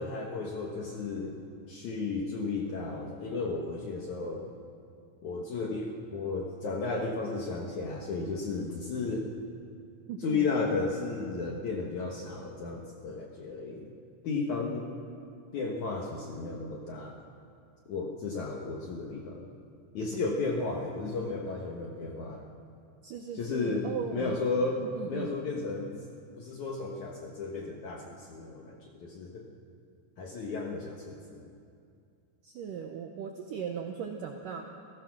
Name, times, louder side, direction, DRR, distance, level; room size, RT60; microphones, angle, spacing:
voice 1, 0.0-1.4 1.7-4.5 5.2-9.3 10.2-13.9 14.2-14.9 15.5-17.2 17.9-19.5 19.9-22.4 23.3-25.9 26.4-29.5 30.2-31.5, left 3 dB, 65° left, 0 dB, 2.0 m, -34 dB
voice 2, 10.1-10.5 23.0-24.4 24.8-25.4 32.4-34.6, right 7 dB, 80° right, 3 dB, 2.0 m, -38 dB
28.5 x 16.0 x 6.1 m, 2.4 s
omnidirectional pair, 5.2 m